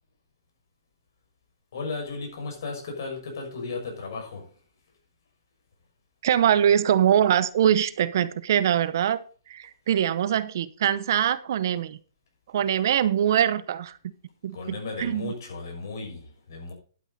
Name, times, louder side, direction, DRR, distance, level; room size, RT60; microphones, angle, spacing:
voice 1, 1.7-4.6 14.5-16.7, left 4 dB, 60° left, 6.3 m, -35 dB
voice 2, 6.2-9.2 9.5-12.0 12.5-14.0 14.4-15.3, right 10 dB, 55° right, 0.8 m, -23 dB
11.5 x 9.2 x 4.1 m
hypercardioid pair, 150°, 2 cm